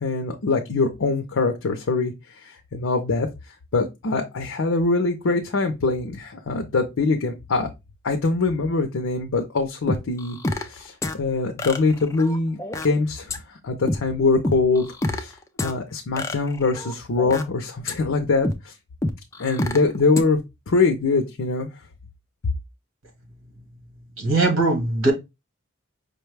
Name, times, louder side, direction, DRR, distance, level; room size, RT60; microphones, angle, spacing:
voice 1, 0.0-2.1 2.7-3.3 3.7-7.7 8.0-12.6 12.8-13.4 13.6-14.9 15.1-15.4 15.6-18.7 19.4-20.4 20.7-21.7, left 3 dB, 70° left, 0.5 m, -23 dB
sound 1, 9.9-10.8 11.0-11.1 11.6-12.8 13.3-13.4 13.9-14.0 14.4-15.2 15.6-15.7 16.2-17.4 17.9-18.0 18.4-18.5 19.0-19.8 20.2-20.3, left 2 dB, 15° left, 0.3 m, -26 dB
voice 2, 24.2-25.1, right 2 dB, 70° right, 1.5 m, -20 dB
5.1 x 2.2 x 3.2 m
head